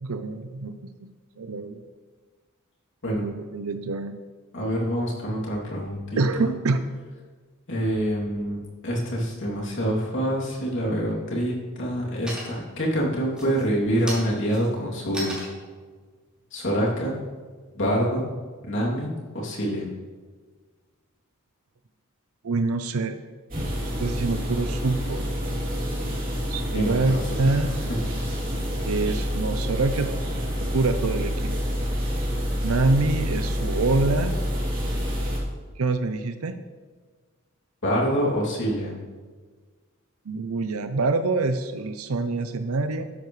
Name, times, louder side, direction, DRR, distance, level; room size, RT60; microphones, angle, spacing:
voice 1, 0.0-1.1 1.4-1.8 3.2-4.2 6.2-6.8 22.4-23.2 24.0-25.2 26.5-27.7 28.8-30.1 30.7-31.5 32.6-34.3 35.8-36.6 40.3-43.0, right 3 dB, 85° right, 9 dB, 0.6 m, -25 dB
voice 2, 4.5-6.5 7.7-15.3 16.5-17.2 17.7-18.2 18.6-19.9 26.7-27.2 28.8-28.9 37.8-39.0, equal, 60° left, -3 dB, 2.9 m, -26 dB
sound 1, 11.7-12.0 12.3-12.8 13.3-17.7, right 1 dB, 5° right, 3.3 m, -38 dB
sound 2, 23.5-35.4, equal, 40° right, 3.0 m, -28 dB
12.5 x 10.5 x 3.2 m, 1.5 s
head